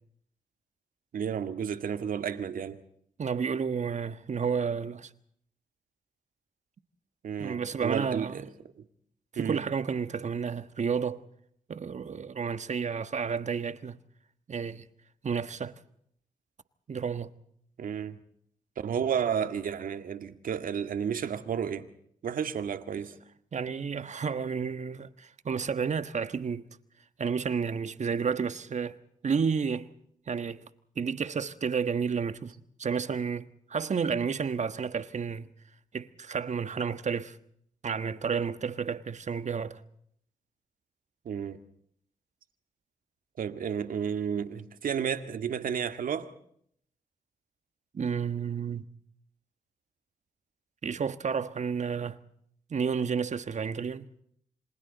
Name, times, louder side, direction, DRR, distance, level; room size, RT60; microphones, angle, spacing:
voice 1, 1.1-2.8 7.2-8.5 8.8-8.9 9.4-9.6 17.8-18.2 18.8-21.9 22.2-23.1 41.3-41.6 43.4-46.3, right 8 dB, 75° right, 1.9 m, -32 dB
voice 2, 3.2-5.1 7.4-8.3 9.3-11.2 11.7-14.0 14.5-14.9 15.2-15.7 16.9-17.3 23.5-26.6 27.2-29.0 29.2-29.9 30.3-30.6 31.0-32.5 32.8-35.5 35.9-37.4 37.8-39.8 47.9-48.9 50.8-52.2 52.7-54.1, right 6 dB, 55° right, 1.4 m, -31 dB
27.5 x 27.0 x 4.1 m
supercardioid pair, 50°, 15 cm